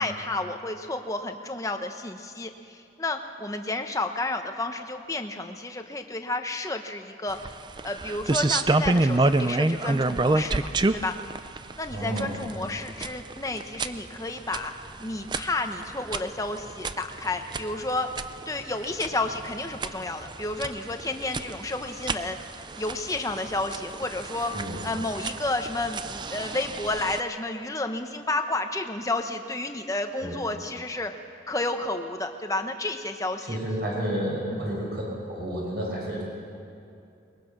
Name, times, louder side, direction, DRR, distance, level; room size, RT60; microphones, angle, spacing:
voice 1, 0.0-7.4 7.8-11.2 11.8-14.7 15.0-18.1 18.5-24.5 24.8-31.1 31.5-33.6 34.5-34.6, left 2 dB, 15° left, 6 dB, 1.0 m, -31 dB
sound 1, 7.3-27.2, right 2 dB, 25° right, 0.4 m, -30 dB
voice 2, 11.9-12.4 24.5-24.8 30.2-30.3 33.5-36.2, right 1 dB, 55° right, -3 dB, 6.5 m, -31 dB
22.0 x 21.5 x 6.0 m, 2.6 s
head